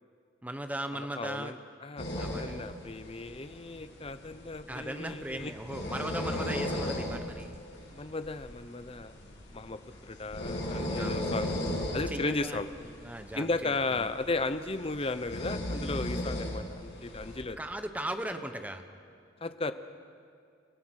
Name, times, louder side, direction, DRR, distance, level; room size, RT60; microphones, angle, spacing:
voice 1, 0.4-1.6 2.2-2.7 4.7-7.6 11.0-11.1 12.1-14.1 17.6-18.8, right 1 dB, 10° right, 7 dB, 1.0 m, -38 dB
voice 2, 0.9-5.5 7.9-9.1 9.5-9.8 10.1-11.5 11.9-12.7 13.3-17.6 19.4-19.7, left 3 dB, 30° left, 11 dB, 0.7 m, -35 dB
sound 1, 2.0-17.4, left 1 dB, 60° left, 6.6 m, -37 dB
28.5 x 16.0 x 6.5 m, 2.3 s
head